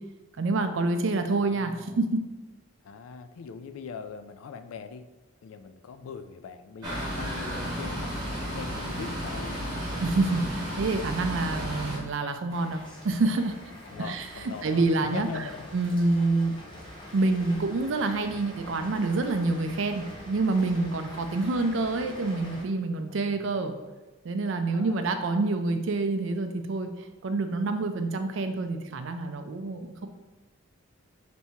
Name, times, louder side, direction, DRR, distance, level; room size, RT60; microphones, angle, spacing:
voice 1, 0.4-2.2 10.0-13.5 14.0-14.3 14.6-15.3 15.7-16.5 17.1-23.8 24.2-26.9 27.2-30.1, right 3 dB, 60° right, 7 dB, 0.4 m, -27 dB
voice 2, 1.5-2.1 2.8-5.1 5.4-9.7 13.9-15.7 23.3-23.6 24.7-25.0, left 5 dB, 75° left, 10 dB, 0.3 m, -41 dB
sound 1, 6.8-12.0, equal, 20° right, 1.0 m, -33 dB
sound 2, 12.5-22.6, left 1 dB, 25° left, 0.8 m, -45 dB
3.4 x 2.8 x 4.3 m, 1.1 s
head